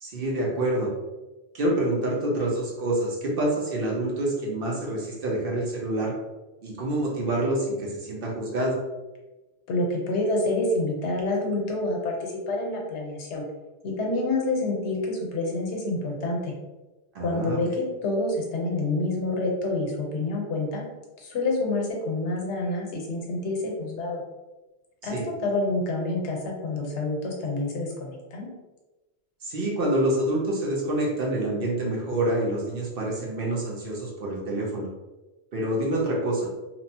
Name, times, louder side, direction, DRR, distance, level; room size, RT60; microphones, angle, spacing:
voice 1, 0.0-0.9 1.5-6.1 6.6-8.8 17.1-17.6 25.1-25.2 29.4-34.9 35.5-36.5, right 1 dB, 60° right, -2 dB, 0.8 m, -27 dB
voice 2, 9.7-13.4 13.8-16.5 17.2-20.8 21.2-24.2 25.0-28.5, left 2 dB, 80° left, -1 dB, 1.0 m, -28 dB
2.9 x 2.0 x 2.6 m, 1.1 s
omnidirectional pair, 1.2 m